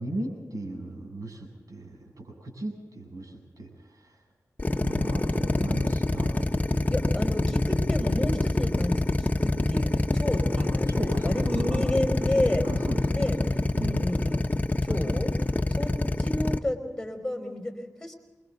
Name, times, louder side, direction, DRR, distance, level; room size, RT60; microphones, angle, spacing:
voice 1, 0.0-4.2 4.7-6.9 10.6-11.8 12.6-13.3 13.7-14.1 14.9-15.2, right 1 dB, 75° right, 2 dB, 7.8 m, -37 dB
Drill, 4.6-16.6, left 2 dB, 25° left, 1.1 m, -25 dB
voice 2, 6.9-12.6 13.1-14.5 14.8-15.3 15.7-15.9 16.2-18.1, left 1 dB, 10° left, 4 dB, 4.8 m, -31 dB
28.5 x 24.0 x 4.0 m, 1.2 s
wide cardioid pair, 60°, 6 cm